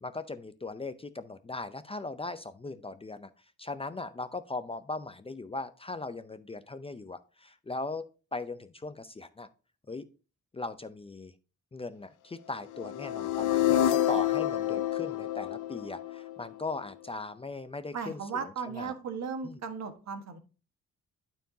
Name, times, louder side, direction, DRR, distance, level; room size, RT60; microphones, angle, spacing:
voice 1, 0.0-3.3 3.6-9.5 9.9-10.0 10.5-11.3 11.7-18.9 19.4-19.6, left 3 dB, 20° left, 11 dB, 0.5 m, -39 dB
sound 1, 12.7-16.8, left 12 dB, 85° left, 0.6 m, -28 dB
voice 2, 17.9-20.4, right 6 dB, 60° right, 7 dB, 1.4 m, -36 dB
12.0 x 4.6 x 2.7 m, 0.35 s
cardioid pair, 95°, 30 cm